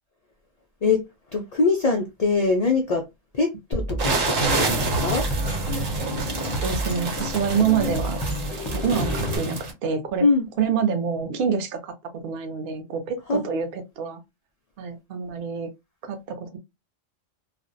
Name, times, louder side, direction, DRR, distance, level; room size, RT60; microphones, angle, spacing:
voice 1, 1.3-3.0 3.3-5.3 10.2-10.5 13.3-13.4, left 4 dB, 85° left, 0.3 m, -23 dB
sound 1, 3.7-9.4, equal, 30° left, 0.5 m, -30 dB
sound 2, 4.0-9.7, right 3 dB, 90° right, 1.2 m, -28 dB
voice 2, 6.6-8.2 8.7-10.3 10.6-14.2 14.8-15.7 16.0-16.6, right 6 dB, 55° right, 0.7 m, -26 dB
2.5 x 2.0 x 2.5 m
omnidirectional pair, 1.3 m